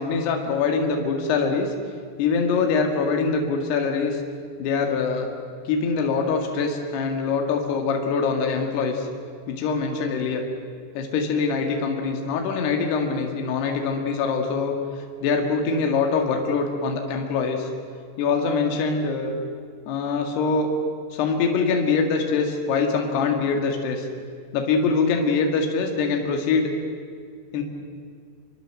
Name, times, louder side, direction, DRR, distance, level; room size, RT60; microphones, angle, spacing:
voice 1, 0.0-1.7 2.2-4.2 4.6-5.3 5.7-9.1 9.5-10.4 11.0-14.7 15.2-17.7 18.2-19.4 19.9-20.7 21.1-24.1 24.5-26.7 27.5-27.6, left 5 dB, 70° left, 2 dB, 4.0 m, -23 dB
27.0 x 22.0 x 7.7 m, 2.2 s
omnidirectional pair, 5.1 m